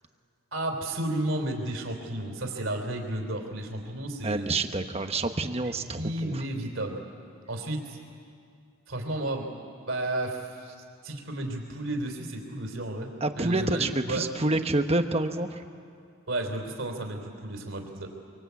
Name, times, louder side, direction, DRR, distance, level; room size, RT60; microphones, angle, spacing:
voice 1, 0.5-4.5 5.6-7.0 7.5-8.0 8.9-9.5 9.9-10.7 11.0-14.2 16.3-18.1, right 1 dB, 55° right, 3 dB, 3.8 m, -32 dB
voice 2, 4.2-6.4 13.2-15.6, right 2 dB, 25° right, 7 dB, 1.1 m, -28 dB
26.0 x 25.0 x 8.4 m, 2.4 s
head